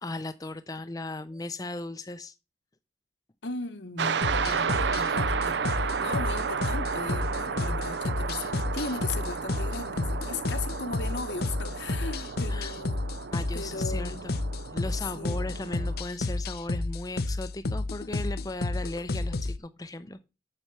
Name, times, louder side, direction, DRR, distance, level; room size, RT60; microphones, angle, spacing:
voice 1, 0.0-2.3 12.5-12.7 13.3-14.4 14.7-20.3, left 2 dB, 20° left, 0.5 m, -37 dB
voice 2, 3.4-13.0 13.5-14.2 15.1-15.4, left 3 dB, 70° left, 1.2 m, -37 dB
sound 1, 4.0-16.0, right 6 dB, 70° right, 0.5 m, -32 dB
sound 2, 4.2-19.6, left 2 dB, 55° left, 0.7 m, -31 dB
7.4 x 6.8 x 6.8 m
head